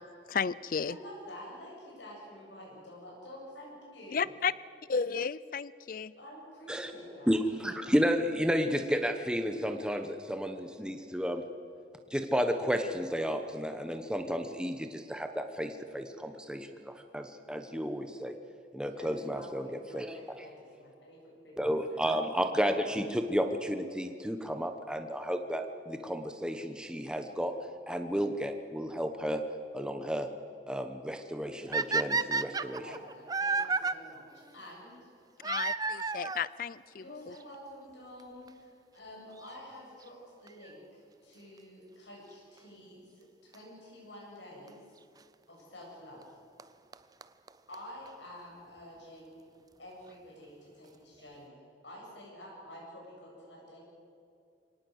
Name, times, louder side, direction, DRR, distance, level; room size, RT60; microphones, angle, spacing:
voice 1, 0.3-1.0 4.1-4.5 4.9-6.1 35.4-37.3, left 6 dB, 50° left, 19 dB, 0.5 m, -33 dB
voice 2, 0.9-4.4 6.2-7.3 18.9-21.6 21.9-22.0 32.6-35.1 36.9-44.8 45.5-46.2 47.7-49.4 49.8-53.8, left 1 dB, 80° left, -3 dB, 7.9 m, -49 dB
voice 3, 7.3-11.4 12.1-18.3 18.7-19.7 19.9-20.2 21.6-27.5 27.9-29.4 29.7-30.3 30.7-32.8, equal, 5° right, 6 dB, 1.0 m, -32 dB
sound 1, 31.7-33.9 35.4-36.5 37.4-37.5 38.2-38.3 38.5-38.6 40.5-40.7 43.5-43.6 44.7-44.8 46.2-46.3 46.6-46.7 46.9-47.0 47.2-47.3 47.5-47.6 47.7-47.8 48.1-48.2, right 4 dB, 20° right, 0.5 m, -31 dB
24.0 x 18.5 x 8.1 m, 2.5 s
head